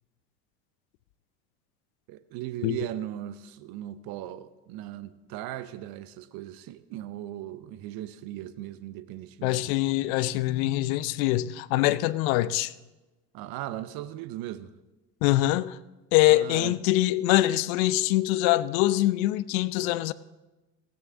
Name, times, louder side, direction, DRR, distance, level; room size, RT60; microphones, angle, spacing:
voice 1, 2.1-9.6 13.3-14.7 16.3-16.7, right 13 dB, 50° right, 1.0 m, -38 dB
voice 2, 9.4-12.7 15.2-15.8 16.1-20.1, left 16 dB, 60° left, 0.8 m, -24 dB
19.0 x 16.0 x 3.7 m
hypercardioid pair, 75°, 47 cm